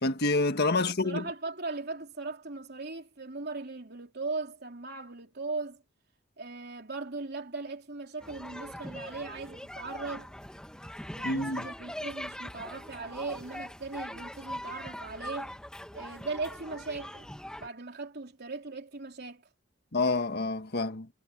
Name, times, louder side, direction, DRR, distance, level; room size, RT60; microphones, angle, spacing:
voice 1, 0.0-1.3 11.2-11.6 19.9-21.1, left 3 dB, 55° left, 1.7 m, -28 dB
voice 2, 0.8-5.8 6.4-10.3 11.2-15.6 15.9-17.3 17.6-19.5, right 3 dB, 55° right, 3.5 m, -38 dB
sound 1, 8.2-17.7, left 1 dB, 5° left, 1.3 m, -41 dB
head